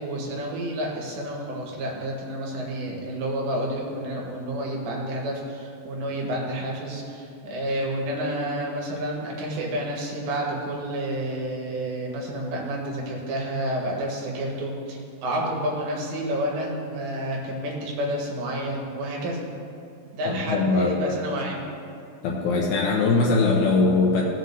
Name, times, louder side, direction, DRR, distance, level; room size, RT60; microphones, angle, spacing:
voice 1, 0.0-19.4 20.1-21.6, right 1 dB, 90° right, -2 dB, 3.7 m, -30 dB
voice 2, 20.3-21.0 22.2-24.2, left 3 dB, 75° left, -1 dB, 2.4 m, -21 dB
17.0 x 7.7 x 2.7 m, 2.4 s
omnidirectional pair, 4.9 m